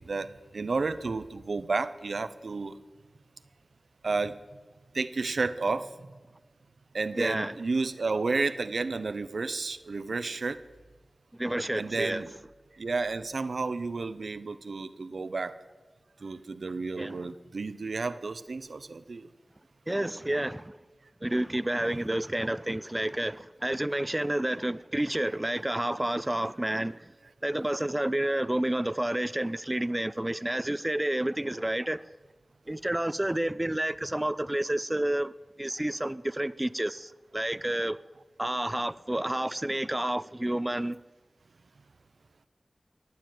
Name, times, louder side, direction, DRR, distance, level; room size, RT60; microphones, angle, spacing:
voice 1, 0.0-2.8 4.0-4.4 4.9-6.1 6.9-10.6 11.8-12.3 12.7-15.6 16.2-19.3, right 3 dB, 85° right, 0.7 m, -31 dB
voice 2, 7.1-7.5 11.3-12.3 17.0-17.2 19.9-20.7 21.2-27.1 27.4-32.0 32.7-35.3 35.6-38.0 38.4-41.0, right 1 dB, 20° right, 0.4 m, -30 dB
14.0 x 9.5 x 9.1 m
cardioid pair, 45°, 0 cm